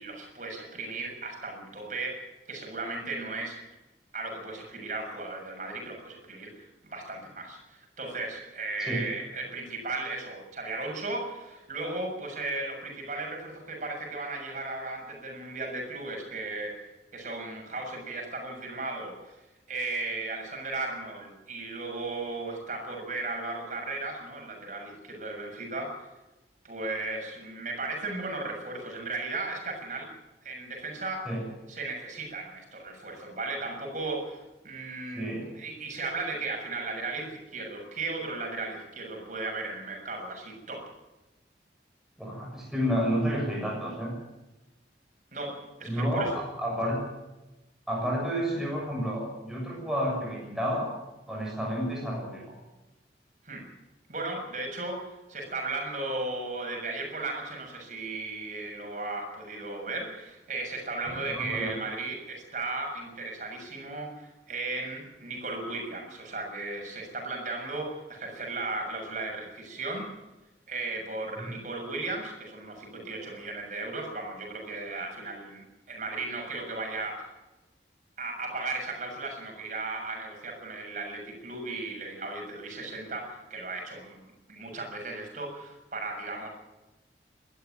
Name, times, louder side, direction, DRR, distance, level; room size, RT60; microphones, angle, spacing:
voice 1, 0.0-3.6 4.1-16.9 17.1-19.4 19.7-26.1 26.6-30.1 30.4-31.4 31.7-40.9 45.3-46.4 53.4-53.6 54.1-70.1 70.7-77.3 78.2-86.5, right 3 dB, 45° right, 1 dB, 6.9 m, -36 dB
voice 2, 35.1-35.5 42.2-44.1 45.8-47.0 47.9-50.9 51.3-52.6 61.1-61.8 71.4-71.6, equal, 5° right, -3 dB, 7.0 m, -30 dB
21.5 x 13.0 x 9.4 m, 1.0 s
head